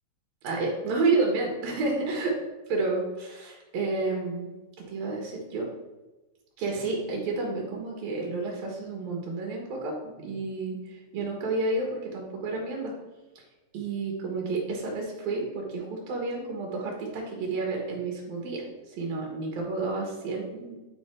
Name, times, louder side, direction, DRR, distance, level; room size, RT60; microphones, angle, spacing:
voice 1, 0.4-2.4 2.7-4.5 4.8-5.7 6.6-12.9 13.7-20.8, right 3 dB, 65° right, -1 dB, 2.9 m, -30 dB
10.5 x 4.0 x 4.5 m, 1.1 s
omnidirectional pair, 4.7 m